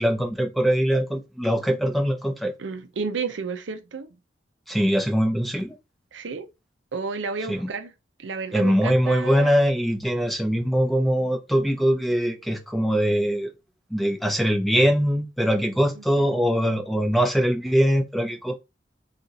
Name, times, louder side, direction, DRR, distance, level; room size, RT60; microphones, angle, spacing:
voice 1, 0.0-2.5 4.7-5.8 7.5-7.7 8.5-13.5 13.9-18.5, equal, ahead, 0.4 m, -22 dB
voice 2, 2.6-4.1 6.1-6.5 6.9-7.9 8.2-9.6 16.0-16.4, right 4 dB, 80° right, 0.5 m, -32 dB
4.0 x 2.4 x 2.6 m
head